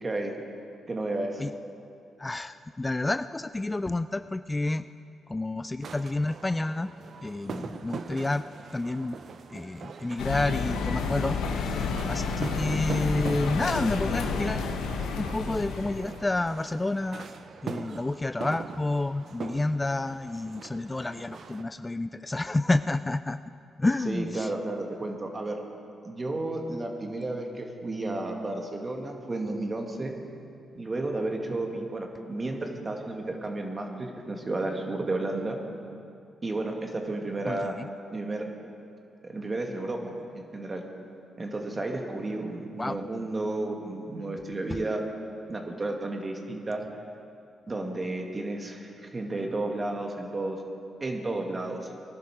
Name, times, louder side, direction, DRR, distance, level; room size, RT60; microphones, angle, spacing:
voice 1, 0.0-0.3 0.9-1.4 24.1-25.6 26.0-30.1 30.7-35.6 36.4-37.8 38.1-38.5 39.2-40.8 41.4-45.0 45.5-46.8 47.7-50.6 51.0-51.8, right 2 dB, 35° right, 2 dB, 2.2 m, -32 dB
voice 2, 2.2-4.8 5.3-6.9 7.2-8.4 8.7-9.2 9.5-14.7 15.2-17.3 17.6-23.4 23.8-24.5 37.5-37.9 42.8-43.0 44.7-44.8, left 2 dB, 20° left, 12 dB, 0.4 m, -29 dB
sound 1, 5.8-21.6, right 5 dB, 65° right, 0.8 m, -42 dB
sound 2, 10.2-16.3, left 4 dB, 85° left, 1.1 m, -30 dB
20.0 x 12.0 x 4.9 m, 2.5 s
supercardioid pair, 50°, 0 cm